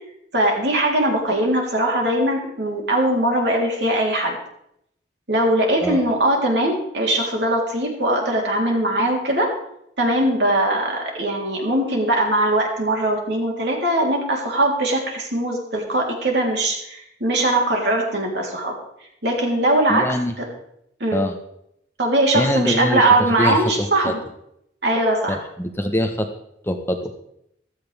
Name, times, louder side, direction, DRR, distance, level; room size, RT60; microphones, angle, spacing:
voice 1, 0.3-4.4 5.3-9.5 10.0-18.7 19.2-20.5 21.0-21.2 22.0-24.2 24.8-25.4, right 1 dB, 70° right, -1 dB, 3.4 m, -21 dB
voice 2, 19.9-20.3 21.1-21.4 22.3-23.0 23.4-24.1 25.3-26.3 26.6-27.1, equal, 15° left, 5 dB, 1.0 m, -23 dB
15.5 x 13.0 x 3.4 m, 0.75 s
head